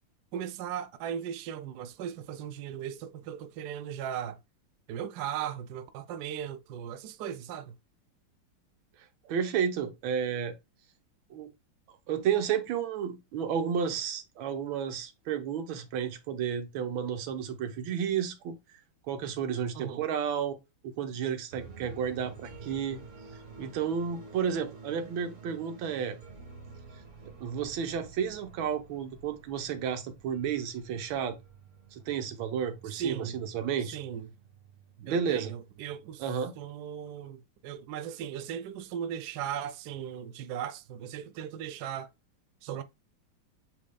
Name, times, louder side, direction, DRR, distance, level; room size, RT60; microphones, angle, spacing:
voice 1, 0.3-4.4 4.9-7.8 19.7-20.0 32.9-33.4 33.8-34.3 35.0-36.2 36.6-42.1 42.6-42.8, right 9 dB, 90° right, 0.8 m, -37 dB
voice 2, 9.2-10.6 11.3-11.5 12.1-18.6 19.1-20.6 20.8-23.0 23.6-26.2 27.2-31.4 31.9-34.0 35.0-35.5 36.2-36.5, right 7 dB, 75° right, 1.5 m, -32 dB
sound 1, 21.5-36.6, right 4 dB, 40° right, 1.2 m, -50 dB
8.3 x 2.8 x 2.2 m
omnidirectional pair, 2.3 m